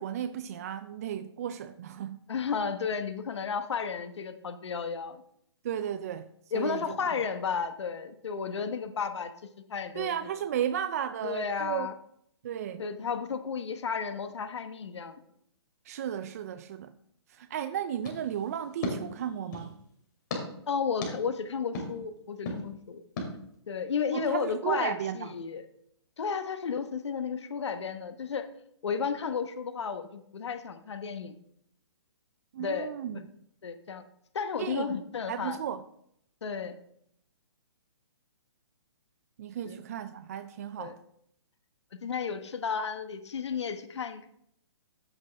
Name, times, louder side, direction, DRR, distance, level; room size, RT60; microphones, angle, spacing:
voice 1, 0.0-2.2 5.6-7.0 10.0-11.9 12.4-12.8 15.8-16.9 17.3-19.8 24.1-25.3 32.5-33.2 34.6-35.0 35.3-35.8 39.4-41.0, right 9 dB, 35° right, 0.4 m, -34 dB
voice 2, 2.3-5.2 6.5-9.3 9.7-10.1 11.2-11.9 12.8-15.2 20.7-23.0 23.7-25.7 26.2-28.5 28.8-31.4 32.6-32.9 33.6-34.0 34.3-35.6 36.4-36.7 39.6-39.8 40.8-40.9 42.0-44.3, left 6 dB, 80° left, 1.1 m, -33 dB
sound 1, 18.0-19.7 20.3-20.4 21.0-21.1 21.7-21.9 22.4-22.6 23.2-23.3, left 3 dB, 45° left, 2.9 m, -36 dB
14.0 x 6.0 x 3.4 m
hypercardioid pair, 160°, 14 cm